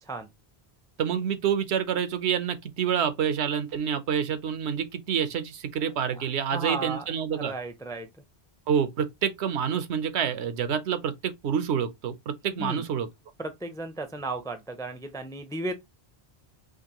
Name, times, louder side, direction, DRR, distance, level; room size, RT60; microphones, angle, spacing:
voice 1, 1.0-7.5 8.7-13.1, right 8 dB, 85° right, 1.0 m, -27 dB
voice 2, 6.0-8.1 12.6-12.8 13.4-15.7, right 2 dB, 5° left, 0.3 m, -35 dB
5.0 x 2.5 x 2.9 m
omnidirectional pair, 1.1 m